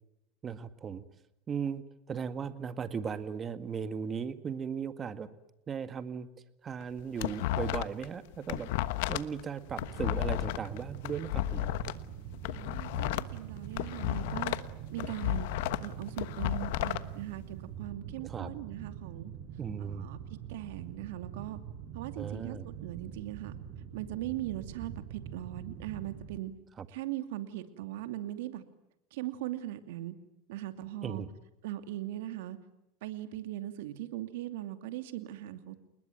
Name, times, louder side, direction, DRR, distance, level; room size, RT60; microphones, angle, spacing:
voice 1, 0.4-1.1 1.5-5.3 5.7-6.3 6.6-8.7 9.1-11.7 18.2-18.5 19.6-20.1 22.2-22.7 26.8-26.9 31.0-31.3, right 6 dB, 25° right, 11 dB, 1.8 m, -37 dB
sound 1, 6.8-8.1 8.3-11.9 12.3-14.7 15.0-17.0, left 15 dB, 75° left, 1.2 m, -33 dB
sound 2, 9.7-26.4, right 9 dB, 50° right, 6.6 m, -44 dB
voice 2, 12.5-14.6 14.9-19.3 19.8-21.6 21.9-23.5 23.9-26.5 26.9-28.6 29.1-30.1 30.5-31.2 31.6-32.6 33.0-35.8, right 14 dB, 80° right, 9 dB, 2.6 m, -40 dB
29.5 x 20.5 x 9.3 m, 0.84 s
supercardioid pair, 130°, 0 cm